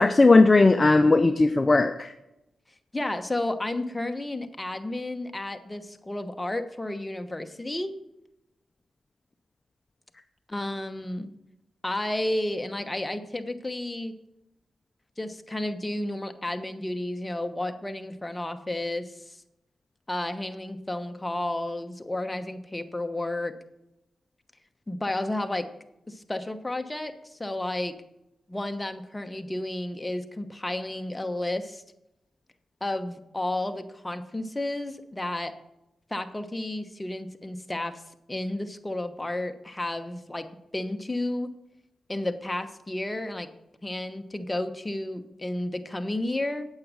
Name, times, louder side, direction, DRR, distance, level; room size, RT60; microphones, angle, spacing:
voice 1, 0.0-2.1, left 3 dB, 30° left, 8 dB, 0.5 m, -18 dB
voice 2, 2.9-7.9 10.5-11.3 11.8-14.1 15.2-19.4 20.1-23.5 24.9-25.6 26.1-27.9 28.5-31.8 32.8-35.5 36.1-38.0 38.3-40.5 40.7-41.5 42.1-43.5 43.8-46.7, left 1 dB, 15° left, 7 dB, 1.0 m, -32 dB
8.6 x 7.4 x 6.2 m, 0.91 s
cardioid pair, 60°, 0 cm